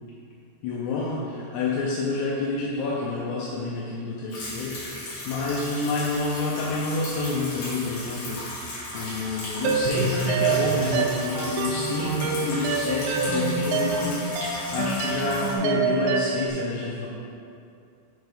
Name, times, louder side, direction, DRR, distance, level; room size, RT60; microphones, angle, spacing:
voice 1, 0.6-8.7 8.9-17.1, left 3 dB, 80° left, -5 dB, 2.6 m, -28 dB
sound 1, 4.3-15.5, left 1 dB, 60° left, 1.9 m, -36 dB
sound 2, 9.6-16.5, right 5 dB, 80° right, 2.7 m, -26 dB
6.7 x 4.4 x 4.8 m, 2.5 s
omnidirectional pair, 5.0 m